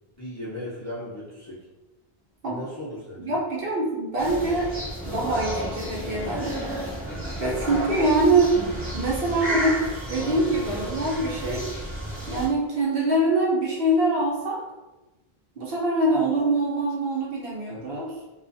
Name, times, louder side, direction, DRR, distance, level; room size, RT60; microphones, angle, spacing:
voice 1, 0.2-1.6 2.5-3.4, left 1 dB, 20° left, -8 dB, 0.5 m, -36 dB
voice 2, 3.2-4.7 5.1-6.5 7.4-8.5 8.9-9.8 10.1-11.6 12.3-14.6 15.6-18.1, right 2 dB, 65° right, -4 dB, 0.8 m, -24 dB
sound 1, 4.2-12.5, equal, 15° right, 0.7 m, -32 dB
2.4 x 2.4 x 2.5 m, 1.1 s
omnidirectional pair, 1.1 m